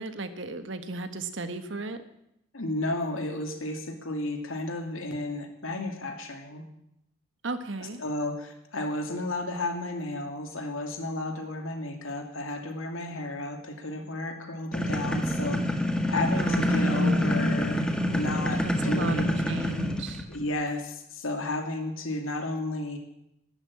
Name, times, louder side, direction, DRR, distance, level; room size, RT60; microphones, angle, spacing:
voice 1, 0.0-2.0 7.4-8.0 16.4-17.3 18.6-20.2, right 3 dB, 60° right, 9 dB, 1.4 m, -35 dB
voice 2, 2.5-6.6 7.8-15.8 16.1-19.4 20.3-23.0, left 2 dB, 75° left, 5 dB, 2.6 m, -33 dB
sound 1, 14.7-20.4, left 1 dB, 5° left, 1.4 m, -26 dB
12.5 x 12.5 x 8.6 m, 0.80 s
head